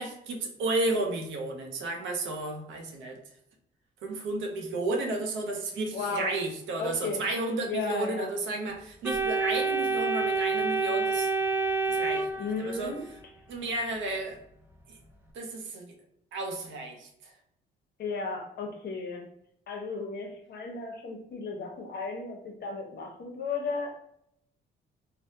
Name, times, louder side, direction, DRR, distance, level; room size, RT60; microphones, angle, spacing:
voice 1, 0.0-3.2 4.0-11.3 11.9-12.9 13.5-14.4 15.3-15.9 16.3-17.1, right 2 dB, 75° right, 3 dB, 0.6 m, -32 dB
voice 2, 5.9-6.4 6.8-7.2 7.7-8.3 12.4-13.0 18.0-19.3 19.7-24.0, left 4 dB, 55° left, 1 dB, 0.8 m, -34 dB
Organ, 9.0-13.0, right 4 dB, 10° right, 0.5 m, -28 dB
3.3 x 2.1 x 2.7 m, 0.72 s
cardioid pair, 90°, 20 cm